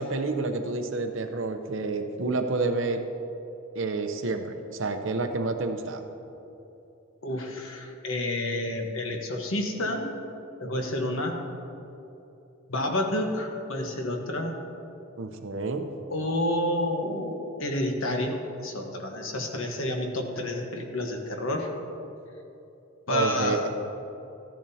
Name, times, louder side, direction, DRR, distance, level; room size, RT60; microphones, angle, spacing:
voice 1, 0.0-3.1 3.7-6.0 15.2-15.9 23.1-23.7, right 3 dB, 60° right, 6 dB, 0.7 m, -29 dB
voice 2, 7.2-10.0 10.6-11.4 12.7-14.6 16.1-21.7 23.1-23.7, left 1 dB, 65° left, 2 dB, 1.2 m, -29 dB
14.5 x 10.5 x 2.8 m, 2.9 s
head